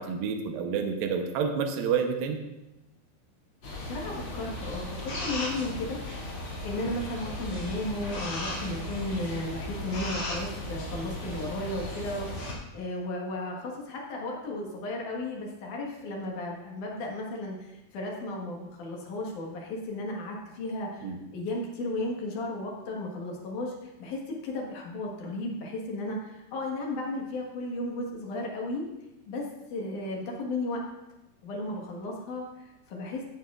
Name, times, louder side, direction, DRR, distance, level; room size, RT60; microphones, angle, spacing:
voice 1, 0.0-2.4 21.0-21.2, right 6 dB, 80° right, 4 dB, 2.1 m, -29 dB
sound 1, 3.6-12.5, left 1 dB, 40° left, 2.3 m, -36 dB
voice 2, 3.8-6.0 6.6-12.3 12.7-28.9 29.3-30.8 31.4-33.3, left 2 dB, 60° left, -1 dB, 2.3 m, -34 dB
15.0 x 8.8 x 2.4 m, 0.96 s
omnidirectional pair, 5.2 m